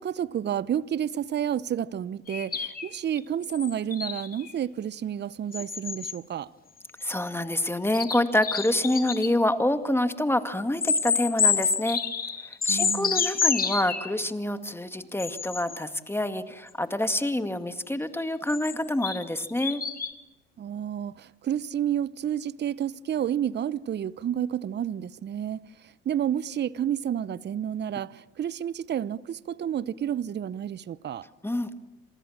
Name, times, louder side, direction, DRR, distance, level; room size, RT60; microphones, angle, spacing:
voice 1, 0.0-6.5 12.7-13.2 20.6-25.6 26.1-31.3, right 10 dB, 35° right, 0.9 m, -30 dB
sound 1, 2.3-4.5 5.5-6.1 7.0-7.1 7.9-9.3 10.8-14.1 15.2-15.8 18.2-20.1, left 6 dB, 30° left, 2.6 m, -28 dB
voice 2, 7.0-12.0 12.6-19.8 31.4-31.7, left 1 dB, 10° left, 2.1 m, -27 dB
29.0 x 27.0 x 7.4 m
hypercardioid pair, 60°, 30 cm